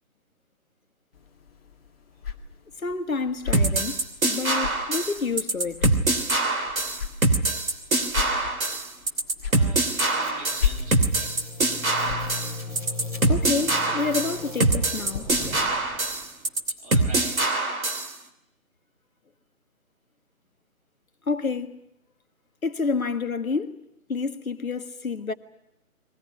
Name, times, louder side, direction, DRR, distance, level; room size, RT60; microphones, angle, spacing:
sound 1, 1.1-15.2, left 7 dB, 40° left, 2.3 m, -36 dB
voice 1, 2.8-5.9 13.3-15.3 21.3-21.8 22.6-23.8 24.1-25.3, left 4 dB, 70° left, 1.7 m, -29 dB
sound 2, 3.5-18.1, right 2 dB, 70° right, 3.2 m, -24 dB
voice 2, 9.5-11.0 16.7-17.6, right 3 dB, 25° right, 4.8 m, -44 dB
sound 3, 10.0-16.4, left 2 dB, 5° right, 2.8 m, -38 dB
22.5 x 18.0 x 9.9 m
figure-of-eight pair, 150°, 43 cm